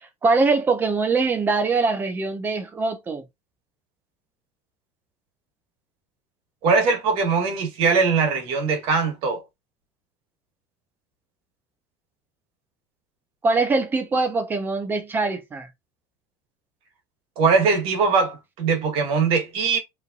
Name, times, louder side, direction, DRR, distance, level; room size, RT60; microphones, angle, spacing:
voice 1, 0.2-3.2 13.4-15.7, right 3 dB, 15° right, 0.8 m, -22 dB
voice 2, 6.6-9.4 17.4-19.8, right 5 dB, 50° right, 1.6 m, -21 dB
5.5 x 3.2 x 2.4 m
cardioid pair, 175°, 12 cm